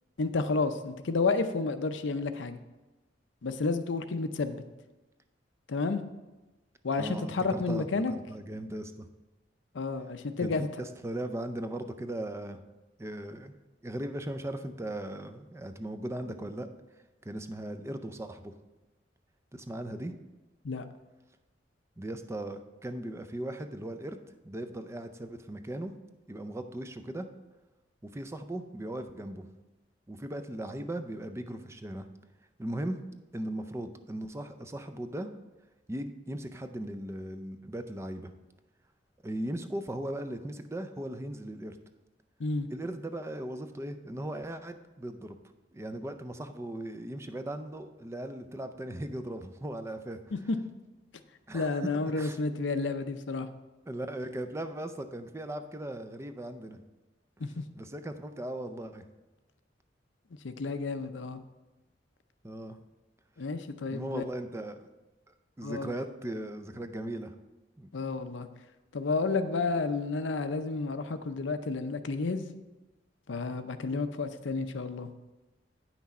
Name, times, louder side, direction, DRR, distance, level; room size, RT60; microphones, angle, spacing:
voice 1, 0.2-2.6 3.4-4.6 5.7-6.0 6.8-8.1 9.7-10.7 20.6-20.9 42.4-42.7 50.3-50.4 51.5-53.5 57.4-57.6 60.4-61.4 63.4-64.2 65.6-65.9 67.9-68.5 68.9-72.5 73.3-75.1, left 3 dB, 90° left, 9 dB, 0.6 m, -31 dB
voice 2, 7.0-9.1 10.4-10.5 10.8-12.6 13.0-13.5 13.8-16.7 17.2-18.5 19.5-20.1 22.0-24.2 24.4-25.9 26.3-27.3 28.0-29.5 30.1-32.1 32.6-33.0 33.3-35.3 35.9-38.3 39.2-41.8 42.7-45.4 45.7-50.2 51.5-52.4 53.9-56.8 57.8-59.0 62.4-62.8 63.9-64.9 65.3-67.3 67.8-67.9, right 1 dB, 15° right, 8 dB, 0.5 m, -38 dB
9.3 x 5.9 x 4.2 m, 1.1 s
head